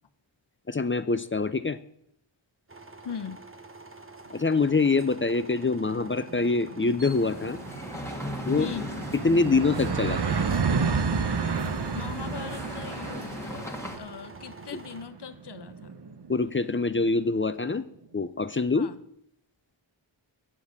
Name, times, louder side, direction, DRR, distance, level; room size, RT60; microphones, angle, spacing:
voice 1, 0.7-1.8 4.3-7.6 8.5-8.7 9.1-10.2 16.3-17.8 18.1-18.9, left 3 dB, 25° left, 13 dB, 0.5 m, -25 dB
sound 1, 2.7-15.0, right 3 dB, 25° right, 1.1 m, -47 dB
voice 2, 3.0-3.4 8.6-8.9 11.9-15.9 18.8-19.0, left 6 dB, 60° left, 10 dB, 0.8 m, -39 dB
sound 2, 5.6-17.1, right 5 dB, 55° right, 0.8 m, -32 dB
sound 3, 7.0-14.0, left 1 dB, 5° left, 1.7 m, -38 dB
8.7 x 7.3 x 6.5 m, 0.73 s
wide cardioid pair, 45°, 48 cm